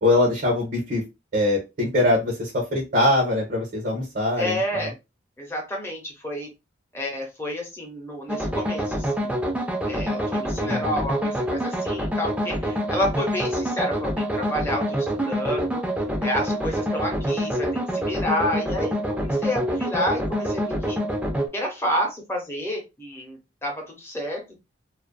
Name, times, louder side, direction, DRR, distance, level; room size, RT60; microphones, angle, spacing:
voice 1, 0.0-1.0 1.3-4.9 10.6-11.0, left 1 dB, 50° right, -1 dB, 0.7 m, -23 dB
voice 2, 4.4-4.9 5.4-6.5 6.9-9.4 9.8-15.8 16.2-21.0 21.5-24.6, left 1 dB, 15° left, 0 dB, 0.8 m, -29 dB
sound 1, 8.3-21.5, equal, 5° right, 0.4 m, -26 dB
2.4 x 2.2 x 2.3 m, 0.25 s
head